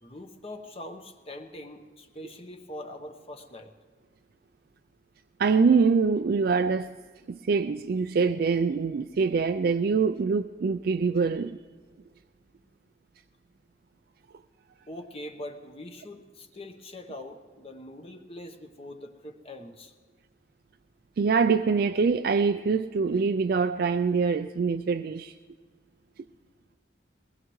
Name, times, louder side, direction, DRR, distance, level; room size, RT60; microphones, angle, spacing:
voice 1, 0.0-3.7 14.9-19.9, left 1 dB, 30° left, 1.0 m, -43 dB
voice 2, 5.4-6.9 7.3-11.6 21.2-25.3, right 5 dB, 55° right, 0.3 m, -24 dB
22.0 x 19.5 x 3.1 m
head